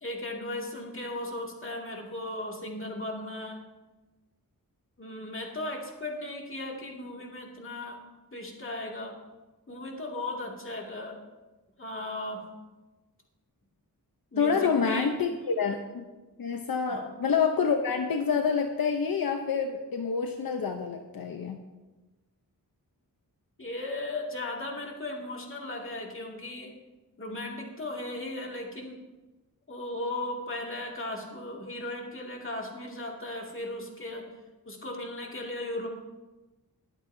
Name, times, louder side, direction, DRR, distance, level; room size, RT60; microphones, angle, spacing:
voice 1, 0.0-3.6 5.0-8.0 8.3-9.2 9.7-11.2 11.8-12.5 14.3-15.1 16.9-17.1 23.6-26.7 27.2-29.0 29.7-34.3 34.6-35.9, left 1 dB, 35° left, 0 dB, 2.3 m, -36 dB
voice 2, 14.4-16.0 16.4-21.6, left 6 dB, 75° left, 5 dB, 0.8 m, -27 dB
21.5 x 8.5 x 2.7 m, 1.1 s
wide cardioid pair, 95°, 36 cm